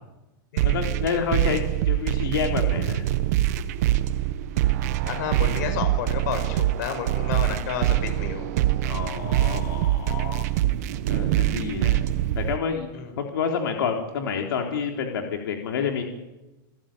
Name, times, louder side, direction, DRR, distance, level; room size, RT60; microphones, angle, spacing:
voice 1, 0.6-3.1 8.8-10.5 11.1-12.1 12.4-16.0, left 6 dB, 85° left, 2 dB, 3.8 m, -29 dB
sound 1, 0.6-12.6, right 14 dB, 45° right, 1.1 m, -24 dB
voice 2, 5.1-8.5 12.9-13.2, left 6 dB, 50° left, 8 dB, 5.5 m, -31 dB
29.0 x 14.5 x 9.2 m, 1.0 s
supercardioid pair, 170°, 12 cm